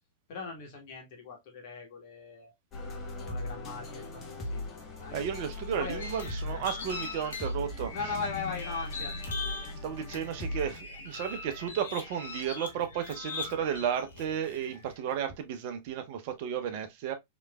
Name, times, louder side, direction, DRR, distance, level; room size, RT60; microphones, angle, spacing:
voice 1, 0.3-2.5 3.2-4.6 5.0-5.2 5.7-6.0 6.5-6.6 7.9-9.3, left 4 dB, 55° left, 1.4 m, -39 dB
sound 1, 2.7-10.8, left 2 dB, 30° left, 1.0 m, -39 dB
voice 2, 5.1-7.9 9.8-17.1, right 8 dB, 55° right, 0.7 m, -33 dB
sound 2, 6.0-14.9, left 4 dB, 75° left, 0.9 m, -41 dB
3.2 x 3.0 x 2.2 m
hypercardioid pair, 100°, 0 cm